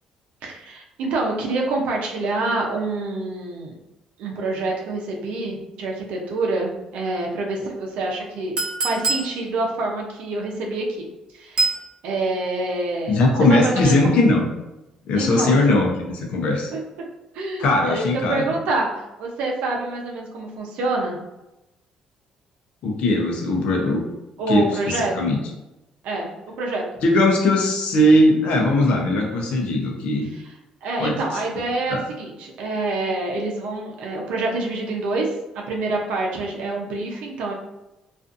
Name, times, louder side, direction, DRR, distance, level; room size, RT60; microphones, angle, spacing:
voice 1, 0.4-3.7 4.2-8.6 8.8-11.1 11.3-11.6 12.0-13.2 13.5-14.2 15.2-15.6 16.7-16.8 17.3-18.9 19.2-21.2 24.4-25.3 26.0-26.8 30.3-30.5 30.8-35.3 35.7-37.5, right 2 dB, 85° right, 0 dB, 0.6 m, -26 dB
Chink clink, 8.6-9.3 11.6-11.8, right 3 dB, 45° right, 0.8 m, -23 dB
voice 2, 13.1-14.4 15.1-16.7 17.6-18.4 22.8-24.0 24.5-25.4 27.0-30.3 31.0-31.2 31.9-32.0, left 1 dB, 70° left, 1 dB, 0.6 m, -19 dB
2.5 x 2.5 x 2.5 m, 0.97 s
cardioid pair, 125°, 2 cm